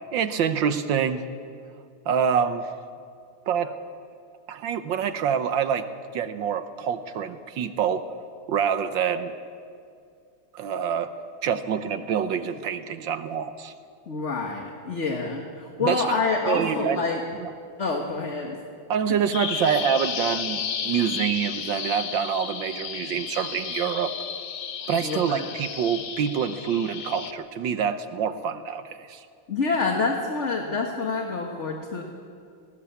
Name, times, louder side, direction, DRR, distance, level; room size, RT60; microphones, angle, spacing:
voice 1, 0.1-1.2 2.1-2.7 3.5-3.7 4.5-5.9 6.1-8.0 8.5-9.3 10.5-11.1 11.4-13.7 15.8-16.1 16.5-17.0 17.4-17.5 18.9-24.1 24.9-29.3, right 7 dB, 70° right, 10 dB, 1.5 m, -26 dB
voice 2, 14.1-17.2 17.8-18.6 25.0-25.5 29.5-32.0, left 4 dB, 35° left, 2 dB, 1.6 m, -27 dB
Bird vocalization bird call bird song, 19.3-27.3, left 7 dB, 65° left, 0.7 m, -33 dB
19.5 x 18.0 x 8.5 m, 2.4 s
omnidirectional pair, 2.4 m